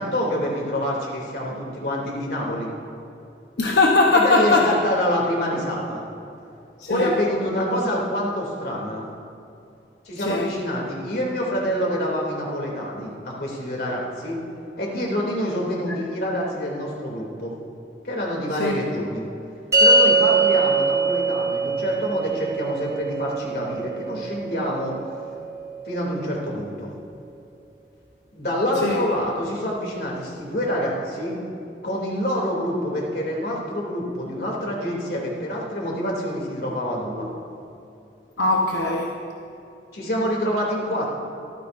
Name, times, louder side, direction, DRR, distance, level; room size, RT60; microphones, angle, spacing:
voice 1, 0.0-2.7 4.1-6.0 6.9-9.1 10.0-14.4 14.8-17.5 18.0-19.2 19.8-25.0 25.9-26.9 28.3-31.4 31.8-37.3 39.9-41.2, equal, 65° left, -3 dB, 2.9 m, -26 dB
voice 2, 3.6-4.7 6.8-7.1 10.3-10.5 18.6-18.8 28.8-29.0 38.4-39.1, left 3 dB, 80° left, 0 dB, 1.0 m, -20 dB
sound 1, 19.7-26.3, right 3 dB, 20° right, 3.2 m, -23 dB
24.0 x 14.0 x 2.6 m, 2.7 s
head